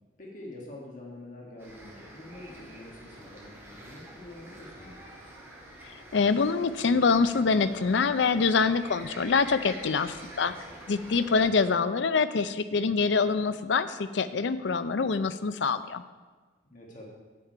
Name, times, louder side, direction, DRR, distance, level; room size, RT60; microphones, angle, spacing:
voice 1, 0.2-5.1 11.3-11.6 16.7-17.1, left 1 dB, 40° left, -3 dB, 1.8 m, -46 dB
sound 1, 1.6-11.4, equal, 15° right, 1.8 m, -47 dB
voice 2, 5.8-10.5 10.9-16.0, left 4 dB, 70° left, 12 dB, 0.5 m, -25 dB
8.8 x 8.5 x 4.6 m, 1.4 s
head